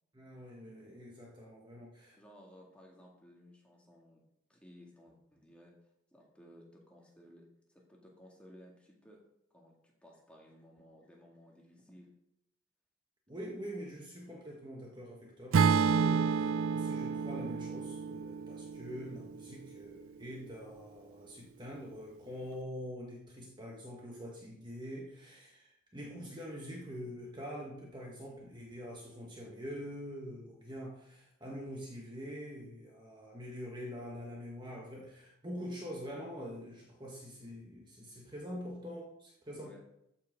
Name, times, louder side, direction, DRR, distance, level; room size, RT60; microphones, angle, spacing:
voice 1, 0.1-2.2 13.3-39.7, equal, 20° right, -2 dB, 1.4 m, -45 dB
voice 2, 2.2-4.2 4.5-5.7 6.1-9.2 9.5-12.1 39.5-39.8, left 1 dB, 5° left, -2 dB, 2.0 m, -57 dB
Acoustic guitar / Strum, 15.5-19.7, right 5 dB, 75° right, 0.4 m, -30 dB
13.5 x 5.9 x 5.1 m, 0.80 s
head